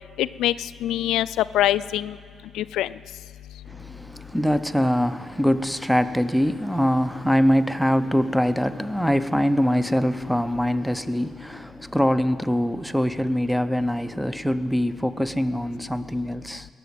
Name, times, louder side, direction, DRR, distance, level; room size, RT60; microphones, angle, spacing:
voice 1, 0.2-0.5 0.8-2.2 2.6-2.9, left 13 dB, 85° left, 0.3 m, -23 dB
voice 2, 3.8-16.7, equal, ahead, 0.6 m, -23 dB
19.0 x 7.0 x 9.3 m
cardioid pair, 90°, 0 cm